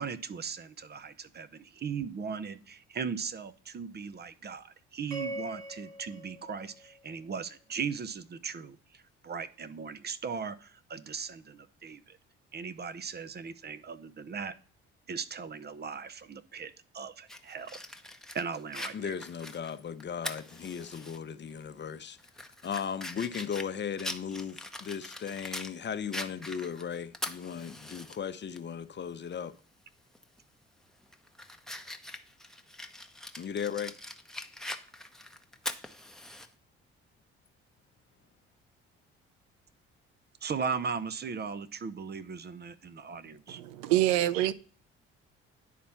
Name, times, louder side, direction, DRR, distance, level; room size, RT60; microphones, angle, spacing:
voice 1, 0.0-8.8 9.2-12.2 12.5-14.5 15.1-17.8 18.3-19.1 40.4-43.6, right 6 dB, 35° right, 0.7 m, -38 dB
sound 1, 5.1-7.5, right 1 dB, 65° right, 3.3 m, -42 dB
Fire, 17.3-21.2 21.6-21.7 22.2-25.7 26.1-28.2 28.6-28.7 30.1-30.4 30.9-36.5, left 1 dB, ahead, 0.9 m, -42 dB
voice 2, 18.9-22.2 22.6-29.5 33.4-33.9, left 7 dB, 35° left, 0.8 m, -36 dB
voice 3, 43.5-44.5, right 14 dB, 85° right, 0.5 m, -26 dB
10.0 x 4.2 x 5.7 m
hypercardioid pair, 55°, 30 cm